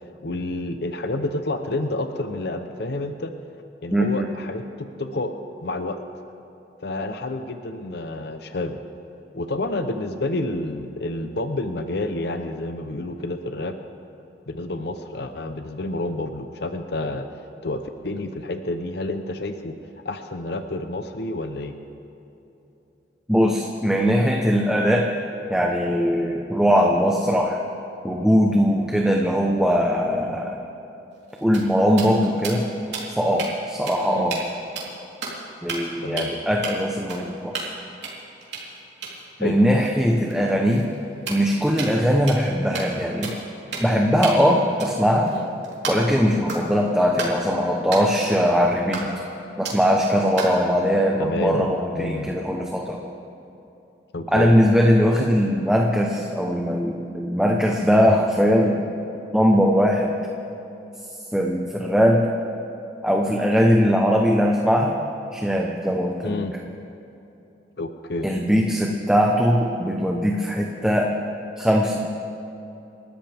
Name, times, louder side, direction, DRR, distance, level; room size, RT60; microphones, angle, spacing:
voice 1, 0.2-3.3 3.8-5.3 5.6-6.0 6.8-8.8 9.3-13.8 14.5-17.3 17.6-19.8 20.0-21.8 34.1-34.3 36.0-36.3 39.4-39.6 45.3-45.5 51.2-51.7 51.9-52.3 54.1-54.5 66.2-66.6 67.8-68.3, left 2 dB, 65° left, 7 dB, 0.8 m, -29 dB
voice 2, 3.9-4.3 23.3-25.1 25.5-27.6 28.0-30.6 31.4-32.6 33.2-34.4 35.6-37.7 39.4-40.9 41.3-43.3 43.8-45.3 45.9-49.1 49.6-53.0 54.3-58.9 59.3-60.1 61.3-62.2 63.0-65.0 65.3-66.4 68.2-71.1 71.6-72.1, equal, 5° right, 0 dB, 0.9 m, -20 dB
sound 1, 31.1-33.5 33.9-34.0 34.3-34.5 34.8-35.4 35.7-35.9 36.2-36.3 36.6-36.7 37.1-37.8 38.0-42.0 42.3-42.5 42.7-43.0 43.2-43.4 43.7-44.0 44.2-46.2 46.5-46.8 47.2-47.4 47.9-48.0 48.9-49.3 49.6-49.9 50.4-50.6, right 4 dB, 75° right, 3.7 m, -33 dB
28.5 x 13.5 x 3.5 m, 2.9 s
head